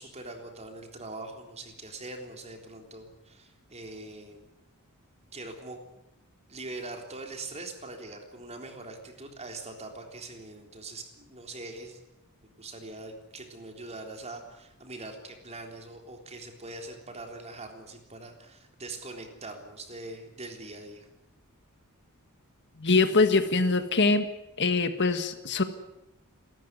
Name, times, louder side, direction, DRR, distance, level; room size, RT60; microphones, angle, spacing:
voice 1, 0.0-4.5 5.3-5.8 6.5-12.0 12.6-21.1, right 2 dB, 30° right, 4 dB, 3.7 m, -42 dB
voice 2, 22.8-24.3 24.6-25.6, left 3 dB, 55° left, 9 dB, 1.7 m, -23 dB
29.0 x 13.5 x 9.5 m, 0.88 s
head